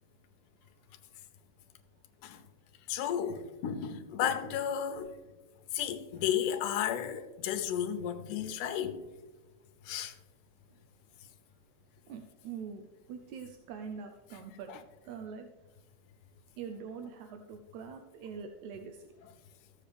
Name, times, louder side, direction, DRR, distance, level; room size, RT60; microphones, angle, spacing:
voice 1, 2.9-5.1 5.7-9.0 9.9-10.1 14.7-14.8, left 9 dB, 75° left, 2.1 m, -33 dB
voice 2, 12.1-15.5 16.6-19.1, right 6 dB, 75° right, 1.8 m, -44 dB
14.5 x 7.7 x 3.4 m
omnidirectional pair, 3.9 m